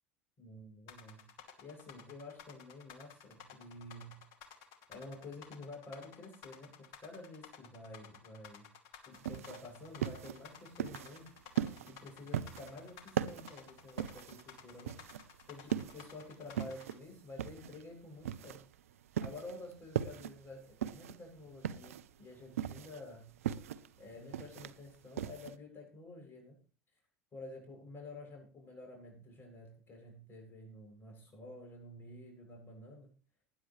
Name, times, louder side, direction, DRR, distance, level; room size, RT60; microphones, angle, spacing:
voice 1, 0.4-1.3 1.6-4.2 4.9-8.7 9.1-11.3 11.8-15.0 15.5-18.7 19.2-23.4 24.0-26.6 27.3-33.1, left 2 dB, 30° left, 2 dB, 7.4 m, -50 dB
sound 1, 0.9-16.9, left 8 dB, 55° left, 2.5 m, -54 dB
sound 2, 9.1-25.5, right 10 dB, 80° right, 0.7 m, -39 dB
19.5 x 10.5 x 3.2 m, 0.37 s
hypercardioid pair, 80°, 8 cm